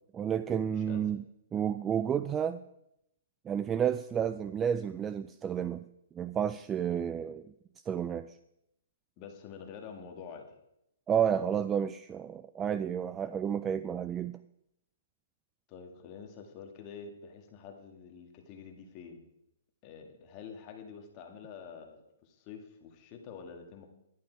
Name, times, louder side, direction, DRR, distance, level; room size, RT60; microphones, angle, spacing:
voice 1, 0.1-1.2 1.5-2.6 3.5-5.9 6.1-7.5 7.9-8.4 11.1-14.4, right 8 dB, 15° right, 13 dB, 0.3 m, -31 dB
voice 2, 0.8-1.1 9.2-10.6 15.7-19.2 19.8-23.9, left 6 dB, 30° left, 4 dB, 1.9 m, -47 dB
11.5 x 10.5 x 4.6 m, 0.80 s
hypercardioid pair, 150°, 0 cm